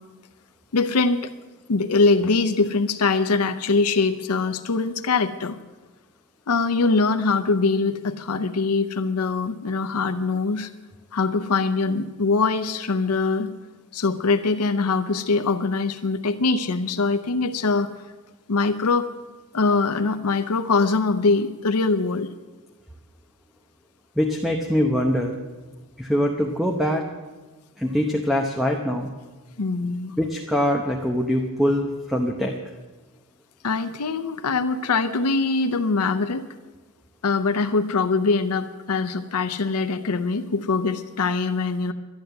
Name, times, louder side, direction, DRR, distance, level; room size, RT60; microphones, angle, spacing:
voice 1, 0.7-1.3 1.7-5.6 6.5-10.7 11.1-13.5 13.9-17.9 18.5-19.1 19.5-22.3 29.6-30.1 33.6-36.4 37.2-41.9, left 4 dB, 90° left, 8 dB, 0.7 m, -23 dB
voice 2, 24.2-25.4 26.0-27.0 27.8-29.1 30.2-32.6, equal, ahead, 2 dB, 0.8 m, -23 dB
11.5 x 11.5 x 7.9 m, 1.3 s
head